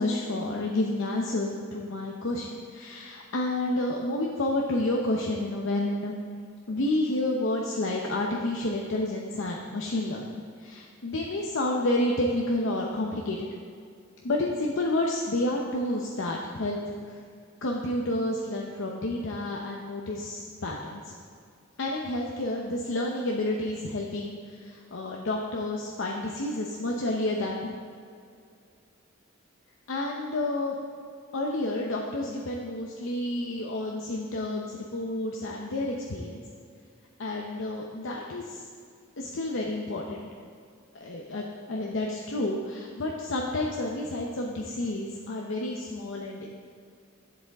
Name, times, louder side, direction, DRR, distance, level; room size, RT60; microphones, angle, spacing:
voice 1, 0.0-6.1 6.7-13.5 14.2-17.2 17.6-21.1 21.8-27.7 29.9-30.8 31.3-36.4 37.2-38.6 39.2-40.3 40.9-46.6, left 1 dB, 70° left, -1 dB, 0.8 m, -30 dB
11.5 x 7.8 x 3.5 m, 2.3 s
head